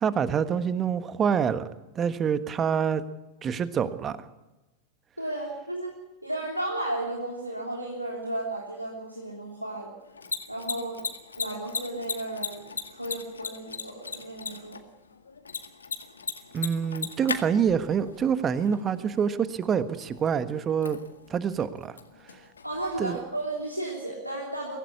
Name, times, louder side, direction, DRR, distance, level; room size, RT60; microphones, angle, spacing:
voice 1, 0.0-1.7 1.9-3.0 3.4-4.2 16.5-21.0 21.3-22.0 23.0-23.2, right 7 dB, 25° right, 13 dB, 1.4 m, -26 dB
voice 2, 5.2-5.9 6.2-9.9 10.5-11.0 11.4-12.6 12.9-14.8 22.6-24.8, right 1 dB, 90° right, -2 dB, 3.3 m, -33 dB
Mechanisms, 10.0-23.6, left 5 dB, 75° left, 1.9 m, -39 dB
23.5 x 16.5 x 8.5 m, 1.0 s
figure-of-eight pair, 90°, 0 cm